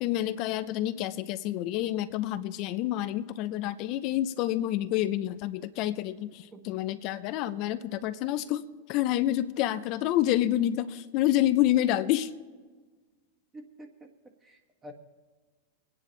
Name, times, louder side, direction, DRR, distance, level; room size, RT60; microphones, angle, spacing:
voice 1, 0.0-8.6 8.9-12.3, left 13 dB, 50° left, 11 dB, 0.5 m, -28 dB
voice 2, 13.5-14.1 14.4-14.9, equal, 20° right, 4 dB, 1.5 m, -48 dB
22.5 x 9.7 x 3.2 m, 1.4 s
hypercardioid pair, 120°, 0 cm